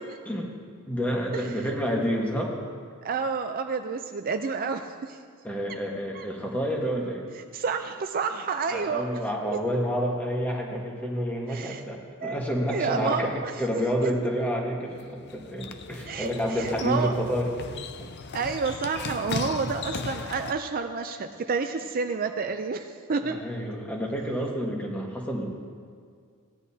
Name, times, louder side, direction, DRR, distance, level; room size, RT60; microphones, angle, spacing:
voice 1, 0.9-2.6 5.4-7.2 8.7-17.5 19.5-19.7 23.3-25.5, equal, 5° left, -1 dB, 1.3 m, -29 dB
voice 2, 3.0-5.2 6.2-6.3 7.5-9.2 9.5-9.6 11.5-11.8 12.2-12.4 12.7-13.5 14.0-14.1 16.1-17.1 18.3-23.4, right 5 dB, 40° right, 6 dB, 0.4 m, -29 dB
sound 1, 14.9-20.5, left 4 dB, 50° left, 0.5 m, -37 dB
16.5 x 10.0 x 2.8 m, 2.1 s
head